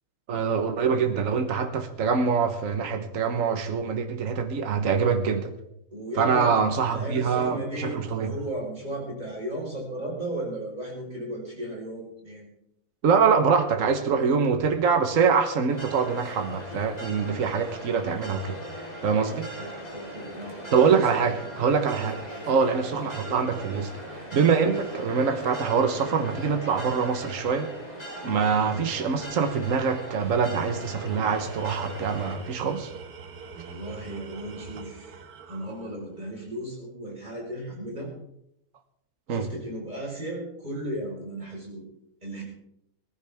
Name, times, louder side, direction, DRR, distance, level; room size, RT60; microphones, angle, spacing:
voice 1, 0.3-5.5 6.2-8.3 13.0-18.6 19.0-19.5 20.7-22.2 22.5-27.7 28.2-32.9 39.3-39.5, right 5 dB, 60° right, 6 dB, 1.6 m, -24 dB
voice 2, 5.9-12.5 19.3-21.0 21.4-21.5 21.8-22.1 24.5-24.8 33.5-35.1 35.5-38.1 39.3-41.9 42.2-42.4, right 1 dB, 30° right, -2 dB, 5.0 m, -35 dB
sound 1, 15.7-32.4, right 1 dB, 25° left, 4.0 m, -39 dB
Tools, 31.0-36.3, right 5 dB, 75° right, 1.6 m, -44 dB
19.0 x 15.0 x 3.6 m, 0.78 s
omnidirectional pair, 1.6 m